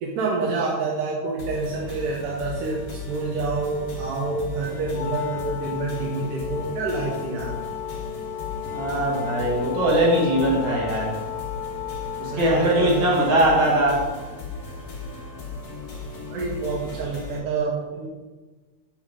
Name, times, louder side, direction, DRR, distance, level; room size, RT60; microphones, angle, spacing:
voice 1, 0.0-2.8 3.1-7.5 12.3-13.1 16.3-18.1, right 3 dB, 85° right, -3 dB, 2.5 m, -27 dB
sound 1, 1.4-17.4, left 4 dB, 50° left, 1.0 m, -36 dB
Wind instrument woodwind instrument, 4.9-14.1, left 10 dB, 90° left, 1.4 m, -34 dB
voice 2, 8.7-11.1 12.2-14.0, right 1 dB, 55° right, -4 dB, 2.4 m, -21 dB
8.0 x 3.8 x 4.8 m, 1.3 s
omnidirectional pair, 3.6 m